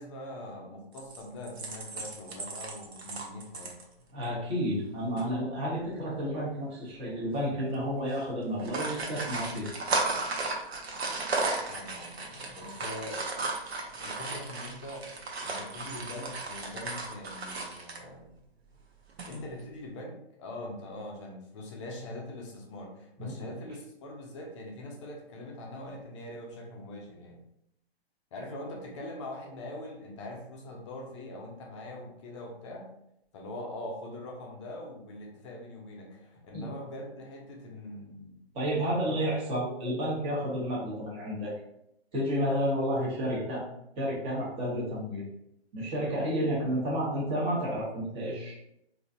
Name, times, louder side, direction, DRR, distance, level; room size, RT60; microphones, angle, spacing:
voice 1, 0.0-3.8 11.7-13.4 13.9-15.1 15.4-18.3 19.3-27.4 28.3-32.9 33.3-38.4 38.8-39.3, left 1 dB, 30° left, 0 dB, 0.6 m, -42 dB
sound 1, 1.0-3.8 4.2-4.3 4.7-4.9 5.2-5.3 6.2-6.6 7.1-7.3 7.6-7.8 8.4-18.0 19.1-19.6, right 3 dB, 75° right, 0.9 m, -35 dB
voice 2, 4.1-9.7 12.6-12.7 23.2-23.3 36.5-36.7 38.5-41.5 42.1-43.6 44.0-45.2 45.7-48.5, equal, 15° right, -5 dB, 0.9 m, -31 dB
3.7 x 2.6 x 2.4 m, 0.80 s
hypercardioid pair, 140°, 32 cm